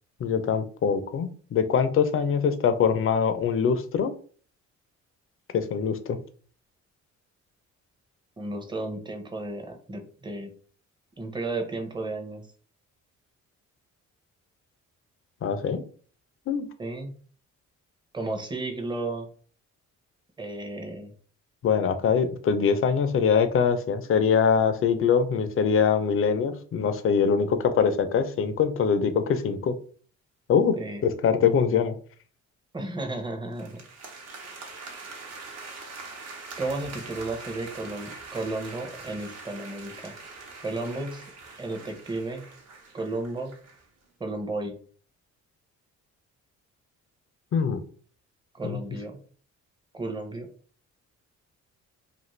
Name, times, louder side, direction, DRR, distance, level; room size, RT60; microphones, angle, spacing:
voice 1, 0.2-4.1 5.5-6.2 15.4-15.8 16.5-16.7 21.6-29.7 30.5-30.7 31.0-31.9 47.5-47.8 48.6-48.8, left 6 dB, 45° left, 10 dB, 0.5 m, -23 dB
voice 2, 8.4-10.5 11.2-12.4 16.8-17.1 18.1-19.3 20.4-21.1 30.8-31.0 32.7-33.8 36.6-40.1 40.6-41.2 41.6-42.5 42.9-43.5 44.2-44.8 48.5-49.2 49.9-50.5, right 2 dB, 15° right, 4 dB, 0.7 m, -33 dB
sound 1, 33.5-43.8, right 4 dB, 55° right, 0.9 m, -43 dB
2.5 x 2.5 x 3.1 m, 0.43 s
cardioid pair, 90°, 30 cm